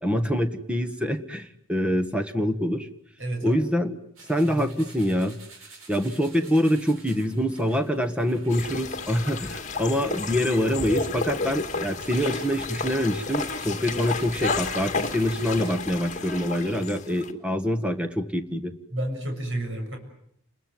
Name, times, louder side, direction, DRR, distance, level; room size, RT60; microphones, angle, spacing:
voice 1, 0.0-2.9 3.4-4.0 4.3-5.4 5.9-18.7, equal, 5° right, 7 dB, 1.6 m, -25 dB
voice 2, 3.2-3.6 4.4-4.7 18.9-20.0, right 1 dB, 60° right, 4 dB, 7.0 m, -30 dB
sound 1, 4.1-15.7, right 3 dB, 75° right, 7.8 m, -50 dB
sound 2, 8.5-17.3, left 4 dB, 35° left, 2.2 m, -32 dB
30.0 x 21.0 x 9.3 m, 0.73 s
head